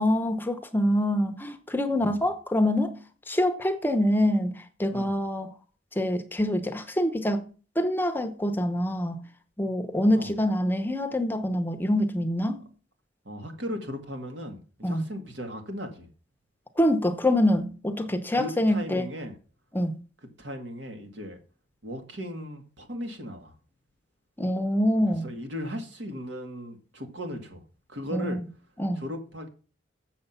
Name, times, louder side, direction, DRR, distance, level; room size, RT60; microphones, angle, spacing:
voice 1, 0.0-2.9 3.3-5.5 6.0-7.5 7.8-9.2 9.6-12.6 14.8-15.0 16.8-19.0 19.7-20.0 24.4-25.3 28.1-28.3 28.8-29.0, left 1 dB, 10° left, 0.8 m, -25 dB
voice 2, 13.3-16.1 17.4-17.5 18.3-19.3 20.4-21.4 21.8-23.5 24.9-27.6 27.9-28.4 28.9-29.5, equal, 65° right, 2.0 m, -37 dB
7.5 x 7.0 x 5.5 m
head